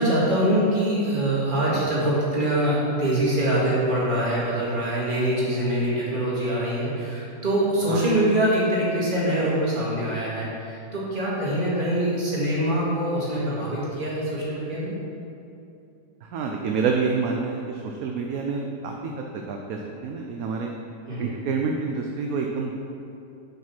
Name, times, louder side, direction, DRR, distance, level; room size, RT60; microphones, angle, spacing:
voice 1, 0.0-14.9 21.1-21.3, right 1 dB, 30° right, -7 dB, 2.3 m, -24 dB
voice 2, 16.2-20.7 21.2-22.7, right 5 dB, 65° right, 1 dB, 1.0 m, -28 dB
7.5 x 5.8 x 5.9 m, 2.8 s
omnidirectional pair, 1.8 m